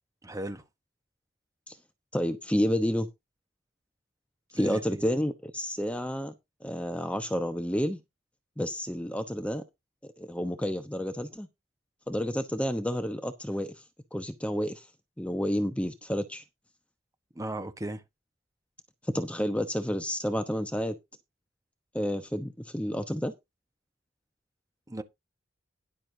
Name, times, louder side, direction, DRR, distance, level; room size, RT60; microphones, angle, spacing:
voice 1, 0.2-0.6 4.5-5.0 17.3-18.0 24.9-25.0, right 1 dB, 15° right, 1.2 m, -36 dB
voice 2, 2.1-3.1 4.5-6.3 6.6-8.0 8.6-9.6 10.0-11.5 12.1-13.7 14.1-14.9 15.2-16.4 19.0-21.0 21.9-23.3, equal, 5° left, 1.0 m, -30 dB
13.0 x 11.0 x 2.8 m
head